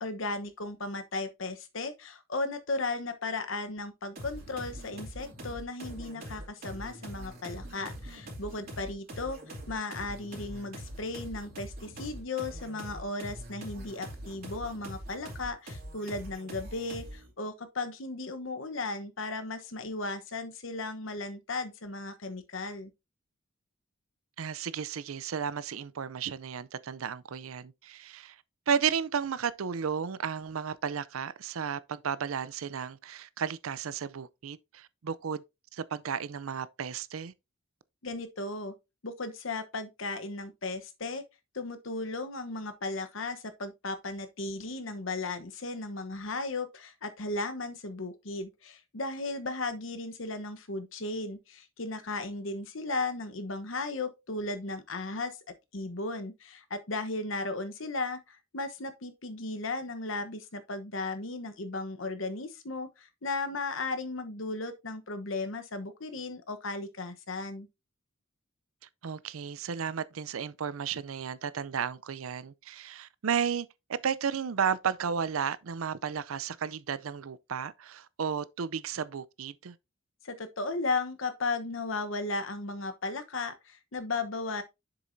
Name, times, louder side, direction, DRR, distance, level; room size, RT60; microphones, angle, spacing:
voice 1, 0.0-9.4 9.7-22.9 38.0-38.7 39.0-41.2 41.5-55.4 55.7-67.7 80.2-84.6, left 3 dB, 65° left, 1.1 m, -35 dB
sound 1, 4.2-17.3, right 1 dB, 45° right, 2.8 m, -43 dB
voice 2, 24.4-28.4 28.7-35.4 35.7-37.3 69.0-79.8, right 7 dB, 80° right, 0.5 m, -33 dB
7.5 x 6.8 x 2.7 m
head